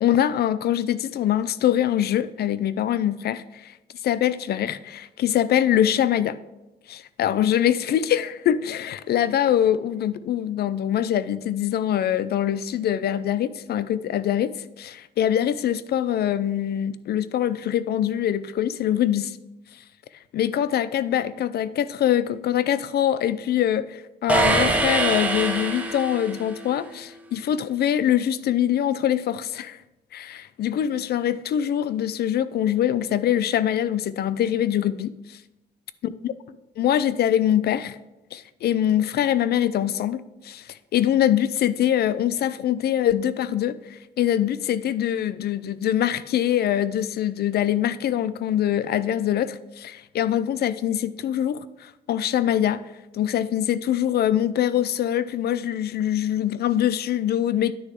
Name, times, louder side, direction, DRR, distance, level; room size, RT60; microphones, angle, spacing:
voice 1, 0.0-3.7 4.0-6.4 6.9-14.5 14.8-19.4 20.3-29.8 30.1-35.1 36.8-38.0 38.3-40.6 40.9-52.8 53.1-57.7, left 10 dB, 60° left, 15 dB, 0.4 m, -23 dB
sound 1, 24.3-26.5, right 2 dB, 10° right, 1.1 m, -23 dB
9.6 x 6.5 x 3.6 m, 0.99 s
cardioid pair, 130°, 18 cm